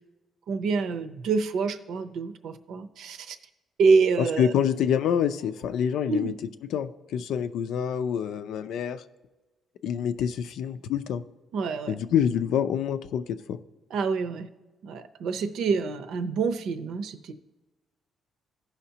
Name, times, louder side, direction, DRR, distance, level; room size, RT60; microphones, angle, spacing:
voice 1, 0.5-3.4 3.8-4.5 6.1-6.3 11.5-12.0 13.9-14.5 14.8-17.3, right 4 dB, 75° right, 8 dB, 0.7 m, -26 dB
voice 2, 4.2-6.3 6.7-9.0 9.8-11.2 11.9-13.6, left 8 dB, 80° left, 11 dB, 0.5 m, -27 dB
16.0 x 5.7 x 2.8 m, 1.2 s
cardioid pair, 130°, 0 cm